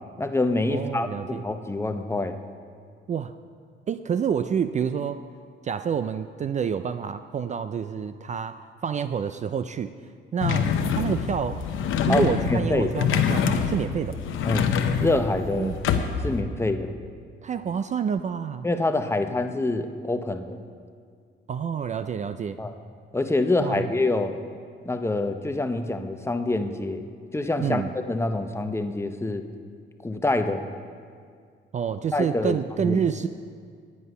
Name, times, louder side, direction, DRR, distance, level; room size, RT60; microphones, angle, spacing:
voice 1, 0.2-2.4 12.1-12.9 14.4-14.7 15.0-15.7 16.2-16.9 18.6-20.6 22.6-22.7 23.1-24.3 24.8-27.1 27.3-29.4 30.0-30.6 32.1-32.6 32.9-33.0, left 2 dB, 15° left, 7 dB, 0.7 m, -26 dB
voice 2, 0.7-1.4 3.1-3.3 3.9-5.2 5.6-9.9 10.3-11.6 12.0-14.2 15.5-15.8 17.4-18.7 21.5-22.6 23.6-23.9 27.6-27.9 31.7-33.3, right 7 dB, 35° right, 11 dB, 0.4 m, -28 dB
sound 1, 10.4-16.4, left 7 dB, 85° left, 0.8 m, -26 dB
10.0 x 9.5 x 5.5 m, 2.1 s
cardioid pair, 90°, 20 cm